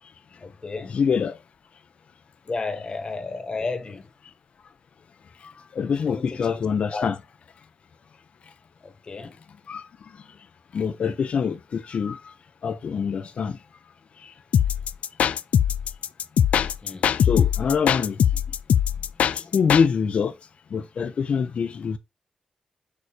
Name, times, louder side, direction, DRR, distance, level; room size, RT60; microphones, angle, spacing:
voice 1, 0.3-1.0 2.4-4.1 6.1-6.6 6.9-7.1 8.8-9.4 16.8-17.1 18.9-19.5 21.3-21.4, left 3 dB, 40° left, 1.5 m, -34 dB
voice 2, 0.9-1.4 5.4-7.2 9.7-10.2 10.7-12.3 12.6-13.6 14.2-14.3 17.1-18.2 19.3-20.3 20.7-22.0, left 6 dB, 65° left, 0.8 m, -25 dB
sound 1, 14.5-19.9, left 8 dB, 80° left, 0.4 m, -21 dB
6.9 x 3.3 x 4.1 m
cardioid pair, 90°, 2 cm